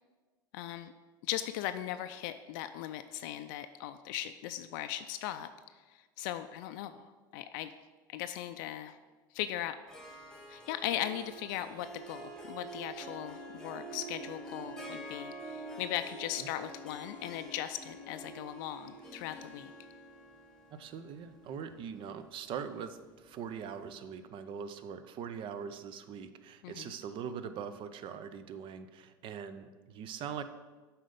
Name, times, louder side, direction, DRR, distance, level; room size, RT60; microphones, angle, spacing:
voice 1, 0.5-0.9 1.3-5.5 5.9-7.7 8.1-9.0 9.3-9.8 10.5-19.7 26.6-26.9, left 12 dB, 65° left, 10 dB, 0.4 m, -38 dB
Harp, 9.9-23.4, right 2 dB, 5° left, 1.3 m, -47 dB
voice 2, 20.7-30.4, right 7 dB, 45° right, 11 dB, 0.6 m, -42 dB
7.5 x 4.3 x 5.2 m, 1.3 s
hypercardioid pair, 80°, 12 cm